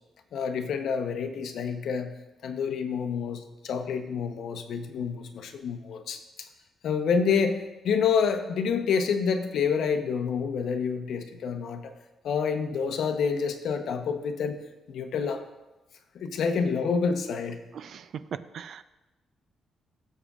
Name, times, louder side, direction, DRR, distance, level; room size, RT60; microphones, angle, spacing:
voice 1, 0.3-2.2 2.4-6.5 6.8-11.9 12.2-14.6 14.9-15.4 16.1-17.6, left 6 dB, 65° left, 6 dB, 0.9 m, -28 dB
voice 2, 17.7-18.8, right 8 dB, 55° right, 14 dB, 0.4 m, -39 dB
18.0 x 7.4 x 2.4 m, 1.1 s
cardioid pair, 170°, 0 cm